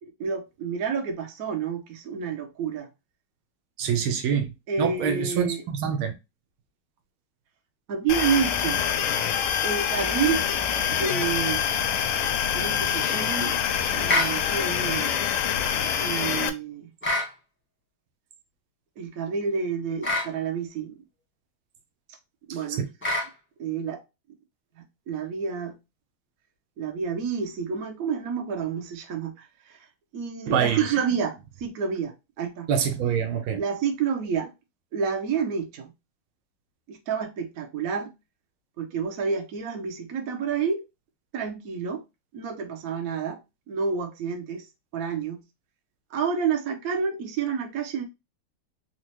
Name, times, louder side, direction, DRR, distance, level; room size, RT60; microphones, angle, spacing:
voice 1, 0.0-2.9 4.7-5.6 7.9-8.9 9.6-10.4 10.9-11.6 12.5-13.6 13.9-15.2 16.0-16.9 19.0-21.0 22.5-22.9 23.6-24.0 25.1-25.8 26.8-29.9 30.1-32.7 33.6-34.5 34.9-35.9 36.9-38.1 38.8-40.8 41.3-42.0 42.3-43.4 43.7-44.7 44.9-45.4 46.1-48.0, right 6 dB, 55° right, 1.0 m, -29 dB
voice 2, 3.8-4.5 4.8-6.1 30.5-30.9 32.7-33.6, right 7 dB, 75° right, 1.4 m, -25 dB
sound 1, 8.1-16.5, left 8 dB, 85° left, 1.5 m, -25 dB
sound 2, 14.1-14.4 17.0-17.3 20.0-20.3 23.0-23.3, left 2 dB, 10° left, 0.9 m, -25 dB
4.3 x 2.3 x 2.9 m
omnidirectional pair, 2.3 m